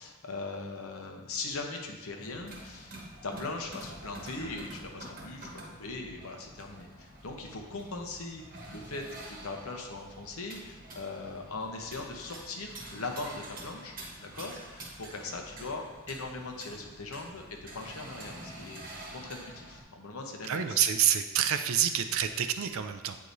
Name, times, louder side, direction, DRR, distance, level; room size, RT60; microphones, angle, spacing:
voice 1, 0.0-13.9 14.2-18.8 19.1-20.8, left 3 dB, 75° left, 2 dB, 0.9 m, -40 dB
sound 1, 2.2-19.8, right 1 dB, 40° right, 1.1 m, -47 dB
voice 2, 20.4-23.2, right 9 dB, 70° right, 8 dB, 0.4 m, -27 dB
8.5 x 4.7 x 2.7 m, 1.2 s
head